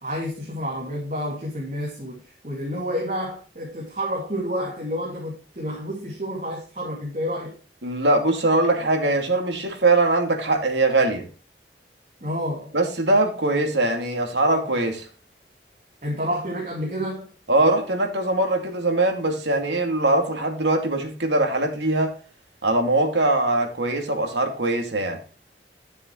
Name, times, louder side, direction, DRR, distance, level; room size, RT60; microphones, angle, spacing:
voice 1, 0.0-7.5 12.2-12.7 16.0-17.3, equal, 45° right, 2.5 m, -29 dB
voice 2, 7.8-11.3 12.7-15.1 17.5-22.1 22.6-25.2, right 2 dB, 85° right, 2.5 m, -22 dB
11.5 x 7.0 x 3.2 m
head